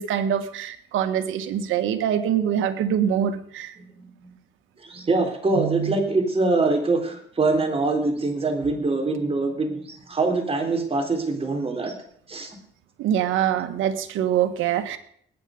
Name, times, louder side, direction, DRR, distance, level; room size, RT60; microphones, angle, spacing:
voice 1, 0.0-3.7 5.5-5.9 13.0-15.0, right 9 dB, 90° right, 8 dB, 1.5 m, -24 dB
voice 2, 3.9-4.3 4.8-11.9 12.3-12.5, right 3 dB, 30° right, 3 dB, 3.9 m, -24 dB
20.0 x 9.2 x 5.3 m, 0.64 s
cardioid pair, 90°, 20 cm